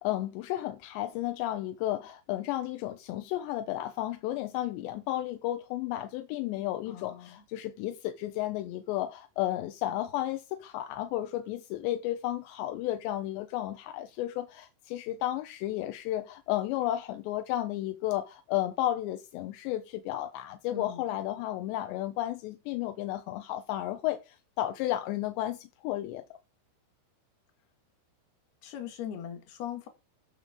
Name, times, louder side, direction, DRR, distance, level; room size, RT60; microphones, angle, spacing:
voice 1, 0.0-26.2, left 14 dB, 80° left, 2.7 m, -33 dB
voice 2, 6.9-7.4 20.7-21.0 28.6-29.9, left 9 dB, 60° left, 3.3 m, -40 dB
14.0 x 5.9 x 5.0 m
omnidirectional pair, 5.7 m